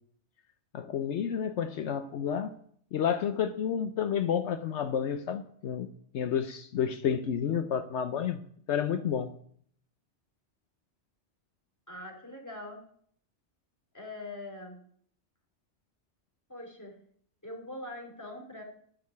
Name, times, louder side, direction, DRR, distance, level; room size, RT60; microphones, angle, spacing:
voice 1, 0.7-2.6 2.9-5.9 6.1-8.4 8.7-9.3, left 8 dB, 75° left, 9 dB, 1.0 m, -30 dB
voice 2, 11.9-12.8 13.9-14.8 16.5-17.0 17.4-18.6, left 1 dB, 15° left, 1 dB, 3.1 m, -42 dB
11.5 x 6.6 x 9.4 m, 0.62 s
omnidirectional pair, 1.2 m